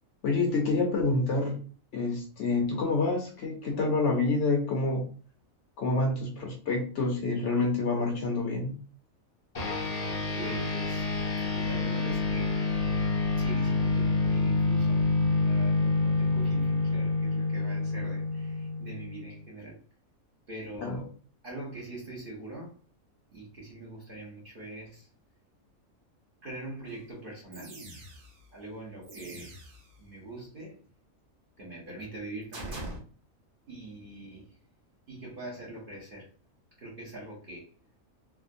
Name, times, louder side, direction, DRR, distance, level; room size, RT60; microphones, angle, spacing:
voice 1, 0.2-1.6 1.9-5.1 5.8-8.7 20.8-21.0, left 3 dB, 65° left, 1.0 m, -27 dB
sound 1, 9.5-19.3, left 3 dB, 40° left, 0.6 m, -27 dB
voice 2, 10.4-11.1 11.5-12.6 13.4-19.8 20.5-21.1 21.4-22.8 23.3-25.1 26.4-27.7 28.5-29.6 30.0-30.8 31.6-32.9 33.7-34.6 35.1-36.3 36.8-37.7, right 2 dB, 45° right, 1.0 m, -43 dB
sound 2, 26.9-27.0 27.5-28.5 29.0-30.0 32.5-33.0, right 1 dB, 90° right, 1.4 m, -42 dB
3.4 x 2.1 x 2.5 m
omnidirectional pair, 1.4 m